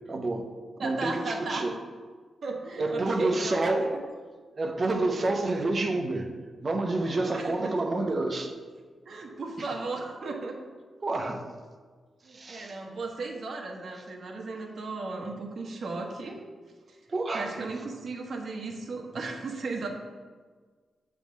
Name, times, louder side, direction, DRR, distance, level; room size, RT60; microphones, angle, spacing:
voice 1, 0.1-0.5 0.8-1.7 2.8-4.0 4.6-6.3 6.6-8.5 9.6-9.7 11.0-11.4 12.3-12.7 17.1-17.5, right 2 dB, 35° right, 4 dB, 0.7 m, -28 dB
voice 2, 0.8-1.6 2.4-3.6 3.9-4.0 4.8-5.3 7.0-7.7 9.0-10.6 12.2-16.4 17.3-19.9, right 3 dB, 55° right, 1 dB, 1.0 m, -36 dB
6.9 x 3.6 x 6.2 m, 1.5 s
wide cardioid pair, 140°, 0 cm